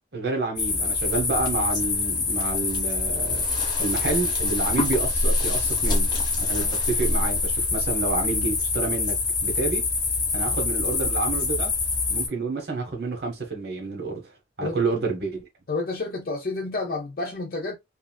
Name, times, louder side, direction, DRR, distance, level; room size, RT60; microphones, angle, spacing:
voice 1, 0.1-3.4 3.8-6.1 6.4-9.2 9.4-9.9 10.3-11.7 12.1-14.3 14.6-15.4, right 3 dB, 60° right, 0.9 m, -29 dB
sound 1, 0.6-12.3, left 3 dB, 25° left, 0.9 m, -25 dB
voice 2, 15.7-17.7, left 3 dB, 55° left, 0.7 m, -29 dB
2.9 x 2.6 x 2.2 m
head